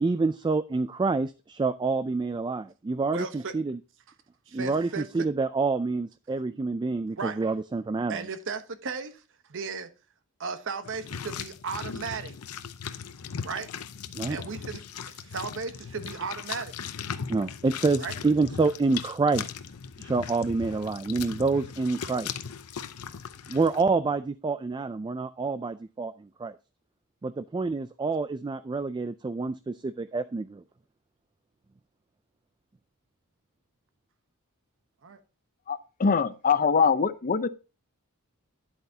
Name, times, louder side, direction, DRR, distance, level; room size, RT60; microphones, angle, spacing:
voice 1, 0.0-3.8 4.5-8.2 14.1-14.4 17.3-19.5 20.0-22.3 23.5-26.6 27.2-30.6, right 3 dB, 20° right, 0.3 m, -27 dB
voice 2, 3.1-3.5 4.5-5.3 7.2-7.4 8.1-9.2 9.5-9.9 10.4-12.4 13.4-13.7 14.3-14.8 15.1-16.7 18.0-18.1 35.0-35.2, right 5 dB, 60° right, 1.0 m, -35 dB
sound 1, 10.8-23.8, left 7 dB, 80° left, 0.7 m, -38 dB
voice 3, 35.7-37.5, left 5 dB, 40° left, 0.6 m, -23 dB
10.5 x 8.0 x 2.8 m
head